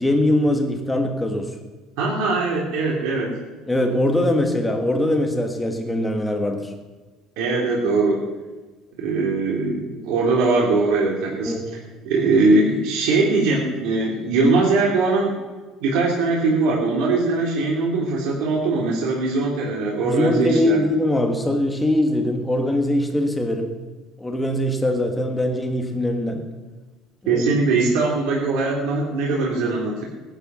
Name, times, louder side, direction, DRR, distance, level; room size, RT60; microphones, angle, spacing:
voice 1, 0.0-1.5 3.7-6.7 11.5-11.7 20.0-23.8 24.2-26.5 27.2-27.4, left 1 dB, 5° left, 4 dB, 1.6 m, -22 dB
voice 2, 2.0-3.3 7.4-8.3 9.0-11.6 12.1-15.4 15.8-20.8 27.3-30.0, right 3 dB, 85° right, -2 dB, 3.4 m, -21 dB
18.0 x 11.5 x 6.2 m, 1.3 s
cardioid pair, 160°, 0 cm